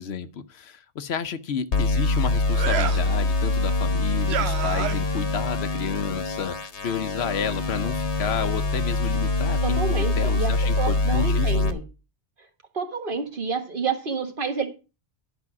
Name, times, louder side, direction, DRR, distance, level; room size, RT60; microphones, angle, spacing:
voice 1, 0.0-11.5, left 7 dB, 70° left, 1.0 m, -31 dB
sound 1, 1.7-11.7, left 2 dB, 90° left, 1.4 m, -24 dB
sound 2, 2.5-3.1 4.3-5.2, right 9 dB, 75° right, 0.9 m, -28 dB
voice 2, 9.6-11.8 12.7-14.7, right 5 dB, 50° right, 1.5 m, -29 dB
11.0 x 5.4 x 5.9 m
omnidirectional pair, 1.1 m